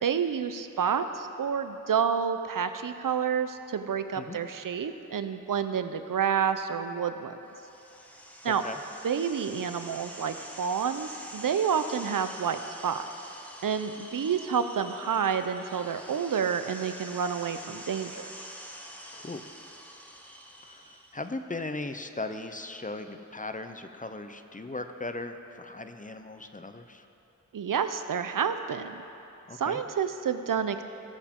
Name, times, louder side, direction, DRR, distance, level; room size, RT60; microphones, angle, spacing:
voice 1, 0.0-7.4 8.4-8.6 9.0-13.1 13.6-18.2 27.5-29.0 29.6-30.8, right 7 dB, 90° right, 10 dB, 0.5 m, -29 dB
sound 1, 7.5-21.3, equal, 5° left, 1.0 m, -46 dB
voice 2, 8.4-8.8 19.1-19.4 20.6-27.1 29.5-29.8, left 2 dB, 25° left, 7 dB, 0.6 m, -38 dB
18.0 x 7.1 x 3.7 m, 3.0 s
wide cardioid pair, 60°, 32 cm